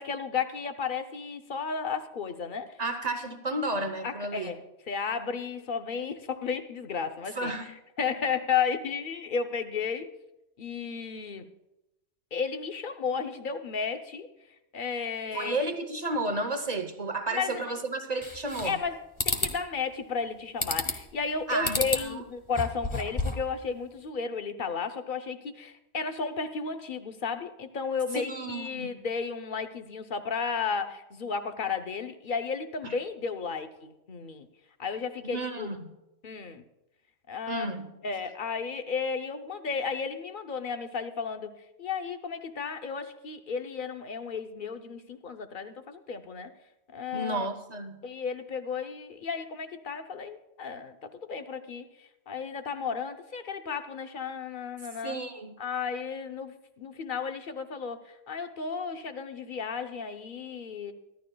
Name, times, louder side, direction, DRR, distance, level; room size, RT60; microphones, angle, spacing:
voice 1, 0.0-2.8 4.0-7.5 8.0-10.1 10.6-11.5 12.3-14.3 14.7-15.6 17.3-17.6 18.6-34.5 34.8-35.7 36.2-36.6 37.3-37.7 38.0-46.5 46.9-47.5 48.0-55.2 55.6-60.9, left 5 dB, 50° left, 8 dB, 0.8 m, -33 dB
voice 2, 2.8-4.5 7.3-7.7 15.3-18.8 21.5-22.2 28.1-29.0 32.8-32.9 35.2-35.9 37.5-37.9 47.1-48.0 55.0-55.5, right 2 dB, 40° right, 7 dB, 0.8 m, -32 dB
sound 1, 18.2-18.9 19.2-19.6 20.6-21.1 21.6-22.1 22.5-23.5, left 2 dB, 25° left, 1.0 m, -30 dB
24.0 x 11.5 x 2.2 m, 0.94 s
omnidirectional pair, 1.2 m